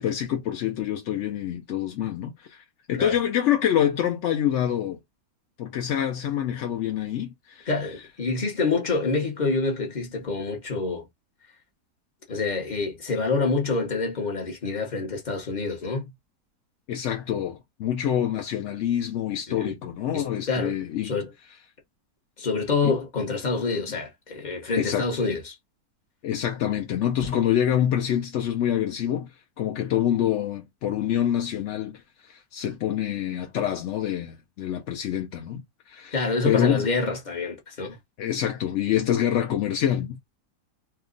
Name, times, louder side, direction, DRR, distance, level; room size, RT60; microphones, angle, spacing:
voice 1, 0.0-2.6 2.9-5.0 5.6-7.7 16.9-21.1 22.8-22.9 24.8-25.1 26.2-29.3 29.6-36.9 38.2-40.2, left 10 dB, 70° left, 0.7 m, -26 dB
voice 2, 7.7-11.1 12.3-16.1 19.6-19.8 20.1-20.7 21.0-21.3 22.4-25.6 36.1-38.0, left 3 dB, 35° left, 0.8 m, -27 dB
2.9 x 2.2 x 3.7 m
omnidirectional pair, 1.8 m